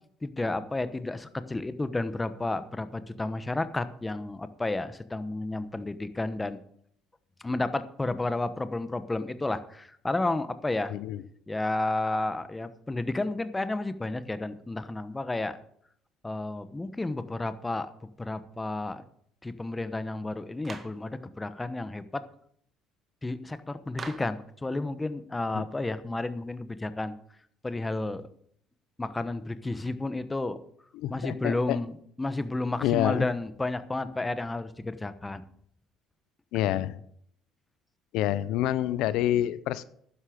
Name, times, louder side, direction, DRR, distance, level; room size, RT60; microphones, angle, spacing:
voice 1, 0.2-6.6 7.4-10.9 11.5-15.6 16.2-17.9 18.2-19.0 19.4-22.2 23.2-27.1 27.6-28.3 29.0-30.6 31.1-35.4, left 2 dB, 15° left, 12 dB, 1.0 m, -31 dB
voice 2, 10.9-11.2 25.5-25.6 30.9-31.8 32.8-33.2 36.5-37.0 38.1-39.8, left 13 dB, 75° left, 16 dB, 0.6 m, -27 dB
Clapping, 20.6-21.0 24.0-24.4, right 4 dB, 35° right, 1.6 m, -41 dB
12.0 x 9.9 x 5.1 m, 0.66 s
supercardioid pair, 95°, 0 cm